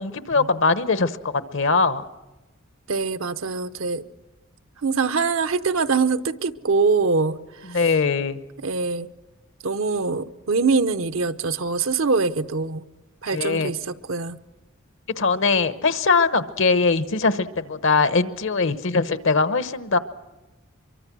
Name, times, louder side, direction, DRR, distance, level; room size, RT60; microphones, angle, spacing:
voice 1, 0.0-2.0 7.7-8.4 13.3-13.7 15.2-20.0, left 4 dB, 65° left, 13 dB, 1.0 m, -21 dB
voice 2, 2.9-4.0 4.8-7.8 8.6-9.1 9.6-12.8 13.2-14.4, right 4 dB, 65° right, 11 dB, 0.8 m, -23 dB
24.0 x 23.5 x 6.1 m, 1.1 s
head